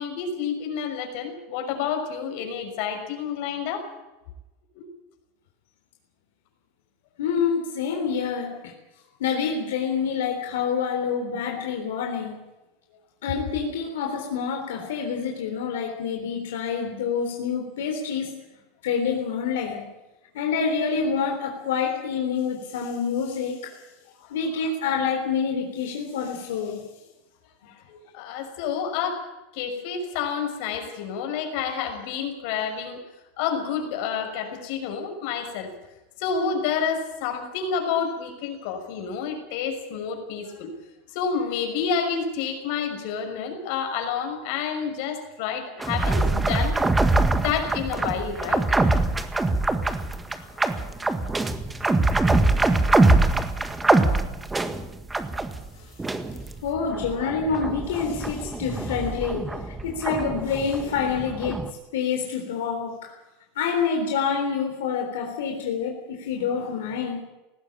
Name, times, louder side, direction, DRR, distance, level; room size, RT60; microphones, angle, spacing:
voice 1, 0.0-3.9 4.7-4.9 24.2-24.7 27.7-29.2 29.5-33.0 33.4-35.7 36.2-40.7 41.1-46.8 47.3-48.6 50.3-50.6, left 6 dB, 65° left, 4 dB, 6.0 m, -29 dB
voice 2, 7.2-8.7 9.2-12.4 13.2-18.3 18.8-19.8 20.3-23.7 24.3-26.8 56.6-59.5 59.8-61.6 61.9-63.1 63.6-67.2, left 6 dB, 80° left, 2 dB, 3.7 m, -27 dB
sound 1, 45.8-55.7 56.0-61.7, right 2 dB, 10° right, 1.7 m, -23 dB
19.5 x 15.5 x 8.8 m, 1.0 s
hypercardioid pair, 110°, 0 cm